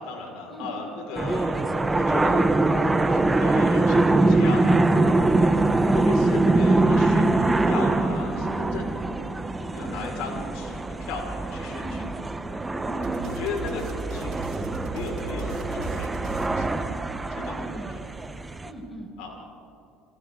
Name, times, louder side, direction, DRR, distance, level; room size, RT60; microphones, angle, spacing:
voice 1, 0.0-2.5 3.1-4.9 5.9-8.9 9.7-12.0 13.2-13.8 14.1-14.3 14.8-16.9 17.3-17.8 19.2-19.3, left 4 dB, 70° left, 0 dB, 5.9 m, -36 dB
sound 1, 1.2-18.7, right 2 dB, 15° right, 1.4 m, -23 dB
voice 2, 9.6-10.0 11.6-12.1 12.8-13.2 17.2-17.9 18.6-19.1, right 1 dB, 10° left, 0 dB, 7.1 m, -40 dB
sound 2, 13.0-17.3, right 5 dB, 65° right, 4.3 m, -37 dB
29.5 x 26.0 x 4.1 m, 2.6 s
hypercardioid pair, 70°, 0 cm